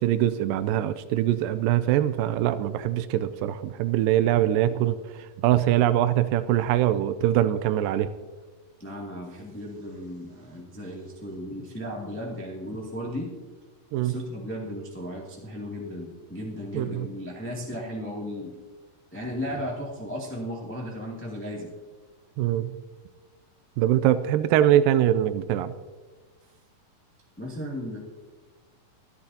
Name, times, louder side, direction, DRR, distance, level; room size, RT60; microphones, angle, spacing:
voice 1, 0.0-8.1 13.9-14.1 16.7-17.1 22.4-22.7 23.8-25.7, right 12 dB, 90° right, 12 dB, 2.3 m, -23 dB
voice 2, 8.8-13.3 14.0-18.5 19.1-21.7 27.4-28.0, equal, 5° left, -3 dB, 1.3 m, -35 dB
23.5 x 10.5 x 2.8 m, 1.3 s
omnidirectional pair, 3.9 m